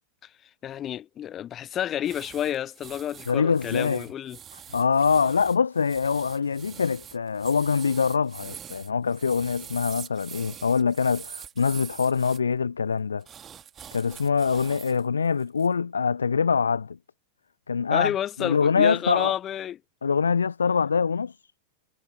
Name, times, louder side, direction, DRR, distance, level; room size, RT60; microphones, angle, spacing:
voice 1, 0.6-4.4 17.9-19.8, left 10 dB, 30° left, 0.8 m, -30 dB
sound 1, 2.0-12.4 13.2-15.0 15.4-15.7, right 9 dB, 25° right, 2.1 m, -44 dB
voice 2, 3.3-4.0 4.7-13.2 13.9-17.0 17.7-18.1 18.4-19.3 20.0-21.4, left 5 dB, 75° left, 0.3 m, -24 dB
figure-of-eight pair, 90°, 0 cm